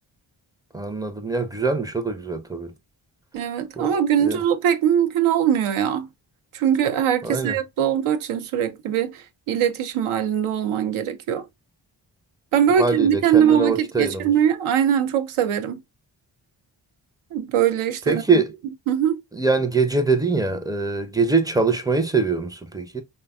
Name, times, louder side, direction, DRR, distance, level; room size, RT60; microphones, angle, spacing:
voice 1, 0.7-2.7 3.8-3.9 4.2-4.4 7.2-7.6 12.7-14.3 18.1-18.5 19.3-23.0, right 4 dB, 10° right, 0.5 m, -23 dB
voice 2, 3.3-6.1 6.5-11.4 12.5-15.8 17.3-18.4 18.9-19.2, right 9 dB, 75° right, 0.6 m, -21 dB
3.3 x 2.2 x 2.3 m
supercardioid pair, 40°, 50 cm